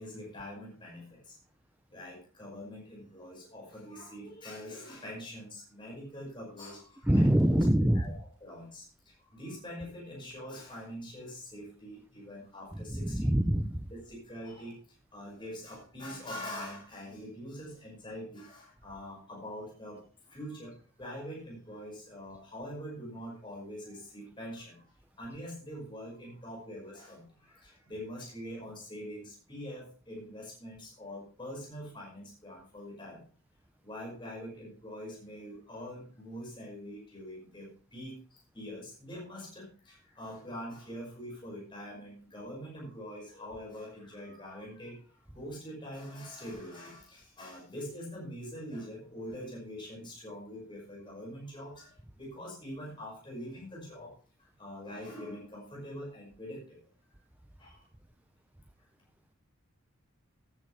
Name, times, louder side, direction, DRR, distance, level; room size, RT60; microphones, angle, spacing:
voice 1, 0.0-1.4 1.9-7.6 7.9-13.3 13.9-24.9 25.2-33.3 33.8-56.8 57.6-57.9, equal, 20° left, -3 dB, 5.5 m, -44 dB
sound 1, 5.8-18.2, equal, 65° right, 5.8 m, -59 dB
voice 2, 7.0-8.2 12.7-13.9, right 1 dB, 10° right, 8 dB, 0.5 m, -25 dB
14.5 x 11.0 x 3.3 m, 0.39 s
head